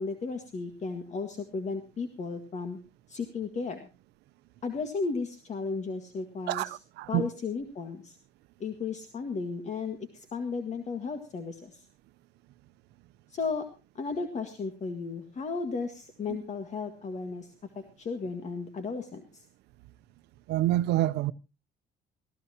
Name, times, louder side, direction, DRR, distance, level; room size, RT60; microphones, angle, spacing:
voice 1, 0.0-2.8 3.1-3.9 4.6-6.6 7.1-8.2 8.6-11.9 13.3-13.7 14.0-19.5, left 4 dB, 45° left, 1.9 m, -34 dB
voice 2, 6.5-7.3 16.3-16.4 20.5-21.3, right 14 dB, 85° right, 0.8 m, -27 dB
19.0 x 15.5 x 2.9 m
cardioid pair, 110°, 17 cm